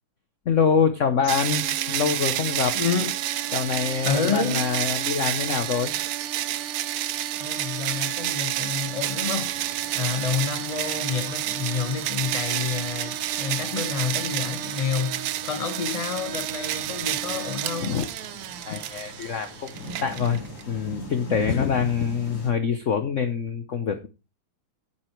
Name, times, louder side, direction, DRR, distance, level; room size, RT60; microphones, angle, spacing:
voice 1, 0.5-2.8 3.5-5.9 17.8-18.0 18.6-20.4 20.7-24.1, left 6 dB, 60° left, 0.8 m, -25 dB
sound 1, 1.3-20.6, right 13 dB, 85° right, 1.6 m, -29 dB
voice 2, 2.7-3.1 4.0-4.7 7.4-9.5 9.9-18.0 21.5-21.6, left 6 dB, 25° left, 0.8 m, -29 dB
sound 2, 9.3-22.5, left 1 dB, 80° left, 5.2 m, -43 dB
8.8 x 8.1 x 4.5 m
omnidirectional pair, 2.4 m